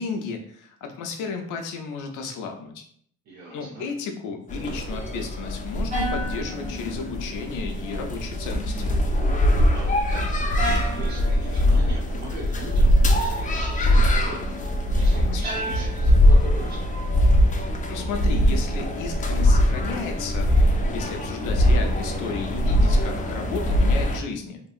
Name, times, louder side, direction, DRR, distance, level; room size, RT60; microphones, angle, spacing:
voice 1, 0.0-2.8 3.5-8.9 15.2-15.4 17.9-24.6, left 5 dB, 90° left, 4 dB, 0.6 m, -33 dB
voice 2, 3.3-3.8 9.7-14.4 14.9-16.8, right 2 dB, 65° right, -3 dB, 0.9 m, -39 dB
sound 1, 4.5-24.2, equal, 25° left, 0.5 m, -22 dB
sound 2, 5.9-7.6 7.9-8.5 10.6-11.8 15.4-16.6, equal, 25° right, 1.3 m, -34 dB
2.9 x 2.6 x 2.4 m, 0.62 s
cardioid pair, 90°, 30 cm